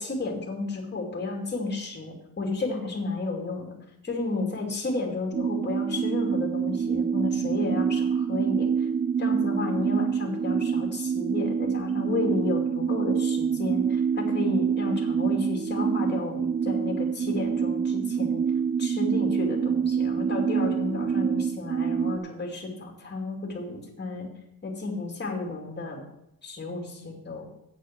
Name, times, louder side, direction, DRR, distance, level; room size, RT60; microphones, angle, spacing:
voice 1, 0.0-3.7 4.0-8.7 9.2-18.4 18.8-24.3 24.6-26.0 26.4-27.4, left 3 dB, 30° left, 0 dB, 2.7 m, -32 dB
sound 1, 5.3-22.2, right 7 dB, 30° right, 0.4 m, -26 dB
8.6 x 8.4 x 6.1 m, 0.83 s
wide cardioid pair, 160°, 36 cm